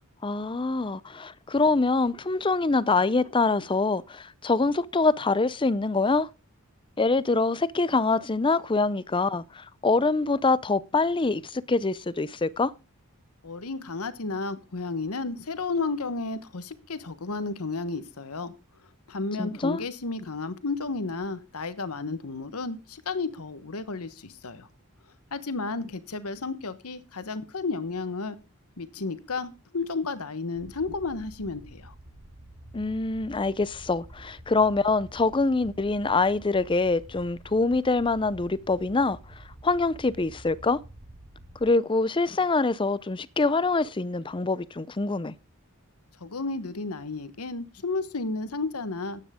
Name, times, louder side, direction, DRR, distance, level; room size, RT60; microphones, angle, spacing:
voice 1, 0.2-6.3 7.0-12.7 19.4-19.8 32.7-40.8 41.6-45.3, left 3 dB, 25° left, 0.5 m, -25 dB
voice 2, 13.4-18.5 19.1-24.7 25.3-28.4 28.8-31.9 46.2-49.2, left 3 dB, 90° left, 1.1 m, -32 dB
sound 1, 30.5-41.7, right 1 dB, 45° right, 1.7 m, -49 dB
13.5 x 9.8 x 3.6 m
head